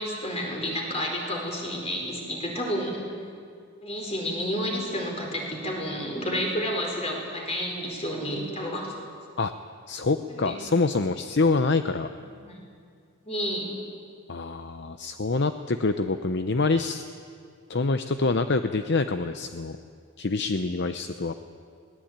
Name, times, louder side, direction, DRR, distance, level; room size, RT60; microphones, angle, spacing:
voice 1, 0.0-3.1 3.8-8.9 10.3-10.6 12.2-12.5 13.2-13.8, equal, 30° left, 0 dB, 4.6 m, -30 dB
voice 2, 9.9-12.1 14.3-17.0 17.7-19.8 20.2-21.3, left 3 dB, 50° left, 9 dB, 0.7 m, -26 dB
22.0 x 19.0 x 8.9 m, 2.3 s
head